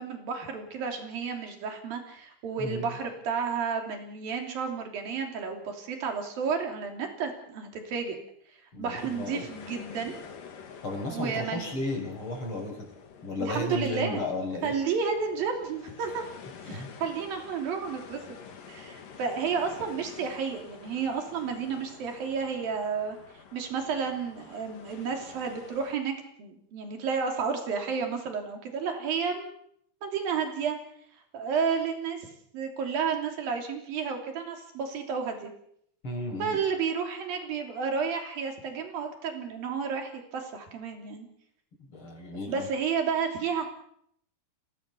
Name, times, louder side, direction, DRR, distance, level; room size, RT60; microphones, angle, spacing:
voice 1, 0.0-8.2 8.8-10.1 11.1-11.7 13.4-14.2 14.6-16.3 16.6-18.4 18.7-23.2 23.5-29.5 30.0-30.8 31.3-32.2 32.5-35.5 36.4-41.3 42.4-43.7, right 6 dB, 75° right, 4 dB, 4.9 m, -31 dB
voice 2, 2.6-2.9 8.7-9.5 10.8-12.8 13.2-14.7 16.7-16.9 36.0-36.6 41.9-42.7, left 2 dB, 35° left, 3 dB, 6.3 m, -34 dB
sound 1, 9.0-25.9, left 6 dB, 70° left, 3.9 m, -49 dB
27.5 x 18.0 x 7.0 m, 0.71 s
omnidirectional pair, 4.1 m